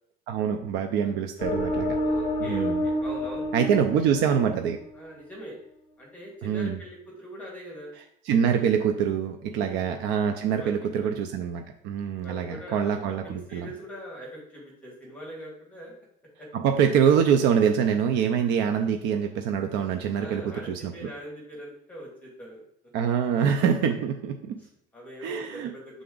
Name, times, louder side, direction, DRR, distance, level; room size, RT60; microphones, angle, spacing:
voice 1, 0.3-2.0 2.4-2.8 3.5-4.8 6.4-6.8 8.3-13.7 16.5-20.9 22.9-24.6 25.2-25.7, right 7 dB, 65° right, 5 dB, 0.5 m, -25 dB
sound 1, 1.4-5.0, equal, 30° left, 1.0 m, -29 dB
voice 2, 2.0-3.5 3.9-4.1 4.9-5.6 6.0-7.9 9.5-9.9 10.5-11.1 12.2-15.9 16.4-16.5 20.2-22.6 24.6-26.0, equal, 10° left, -4 dB, 1.9 m, -42 dB
6.8 x 3.7 x 3.8 m, 0.76 s
cardioid pair, 160°, 19 cm